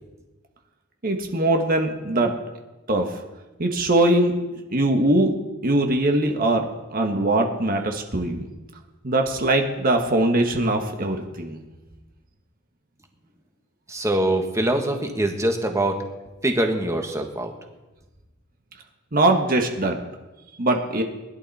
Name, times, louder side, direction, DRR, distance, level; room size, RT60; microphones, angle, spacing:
voice 1, 1.0-2.3 2.9-3.2 3.6-4.4 4.7-5.3 5.6-8.5 9.0-11.6 19.1-20.0 20.6-21.0, right 2 dB, 45° right, 3 dB, 1.4 m, -21 dB
voice 2, 13.9-16.0 16.4-17.5, right 1 dB, 15° right, 4 dB, 1.5 m, -23 dB
20.5 x 11.5 x 4.2 m, 1.1 s
head